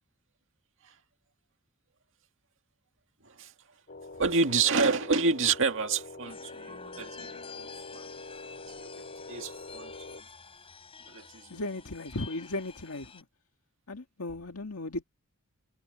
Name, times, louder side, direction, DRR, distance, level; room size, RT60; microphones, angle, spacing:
sound 1, 3.9-10.2, left 3 dB, 45° left, 2.2 m, -45 dB
voice 1, 4.2-8.1 8.8-9.9 11.1-11.6, right 4 dB, 60° right, 2.1 m, -29 dB
sound 2, 6.2-13.2, left 5 dB, 25° left, 3.9 m, -49 dB
voice 2, 11.5-13.2 13.9-15.0, left 2 dB, 75° left, 2.0 m, -36 dB
head